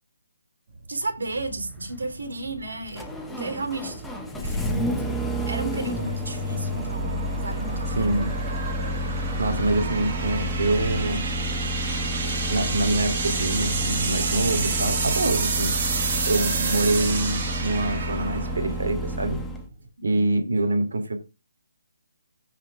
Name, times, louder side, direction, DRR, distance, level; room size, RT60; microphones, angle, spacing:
sound 1, 0.7-19.9, right 4 dB, 25° right, 1.8 m, -31 dB
voice 1, 0.9-4.0 4.4-4.9 5.5-8.2, right 2 dB, 90° right, 7 dB, 3.6 m, -33 dB
Engine starting, 1.3-19.7, equal, ahead, 0.6 m, -30 dB
voice 2, 7.9-8.3 9.4-11.2 12.5-15.7 16.2-19.4 20.0-21.1, right 2 dB, 70° right, 7 dB, 2.8 m, -25 dB
15.0 x 5.1 x 3.5 m, 0.27 s
hypercardioid pair, 180°, 0 cm